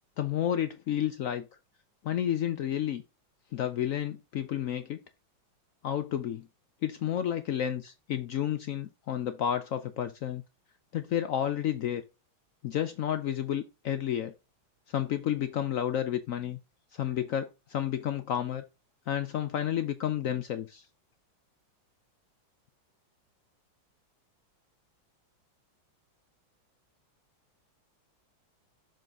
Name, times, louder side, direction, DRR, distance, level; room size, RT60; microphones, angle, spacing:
voice 1, 0.2-1.5 2.0-3.0 3.5-5.0 5.8-6.5 6.8-10.4 10.9-12.0 12.6-14.3 14.9-16.6 16.9-18.6 19.1-20.9, left 10 dB, 80° left, 0.7 m, -31 dB
7.6 x 5.1 x 3.4 m
omnidirectional pair, 2.2 m